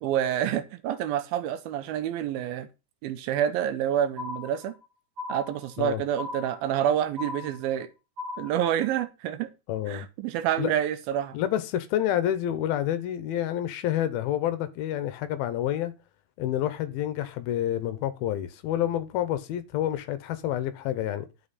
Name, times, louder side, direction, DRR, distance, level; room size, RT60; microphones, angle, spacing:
voice 1, 0.0-2.7 3.0-4.7 5.3-7.9 8.4-9.5 9.9-11.4, right 10 dB, 80° right, 2.3 m, -28 dB
sound 1, 4.2-4.8 5.2-5.8 6.2-6.8 7.2-7.8 8.2-8.8, left 3 dB, 40° right, 2.5 m, -38 dB
voice 2, 9.7-10.1 10.6-10.8 11.3-15.9 16.4-21.3, left 11 dB, 80° left, 2.4 m, -28 dB
11.5 x 5.8 x 4.1 m
omnidirectional pair, 4.6 m